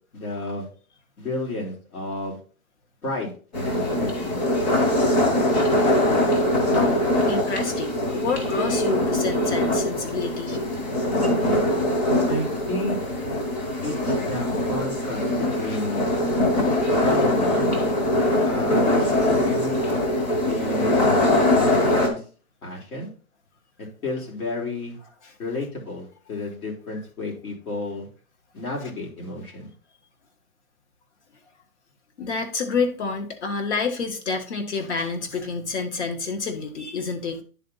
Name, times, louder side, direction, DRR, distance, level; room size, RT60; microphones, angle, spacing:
voice 1, 0.1-0.7 1.2-2.4 3.0-4.4 12.3-13.1 13.8-15.3 15.6-16.1 17.0-17.7 18.4-19.8 20.5-22.2 22.6-23.1 24.0-25.0 25.4-28.1 28.5-29.7, left 2 dB, 75° left, -2 dB, 4.3 m, -32 dB
sound 1, 3.5-22.1, left 1 dB, 30° left, 1.5 m, -22 dB
voice 2, 6.7-10.6 15.6-15.8 16.6-16.9 17.2-17.3 32.2-37.4, left 4 dB, 50° left, 6 dB, 1.6 m, -29 dB
10.0 x 4.1 x 4.0 m, 0.39 s
hypercardioid pair, 165°, 44 cm